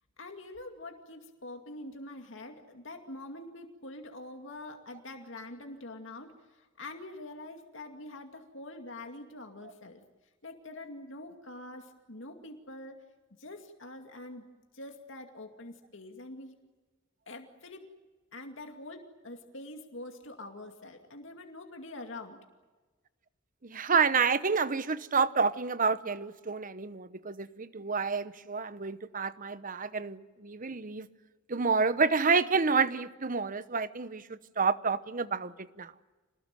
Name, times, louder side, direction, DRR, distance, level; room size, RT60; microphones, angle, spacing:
voice 1, 0.2-10.0 10.4-13.0 13.4-14.4 14.7-16.5 17.3-17.9 18.3-22.4, left 2 dB, 65° left, 4 dB, 2.4 m, -45 dB
voice 2, 23.6-31.1 31.5-35.9, right 5 dB, 40° right, 14 dB, 1.0 m, -29 dB
27.0 x 20.0 x 9.0 m, 1.3 s
head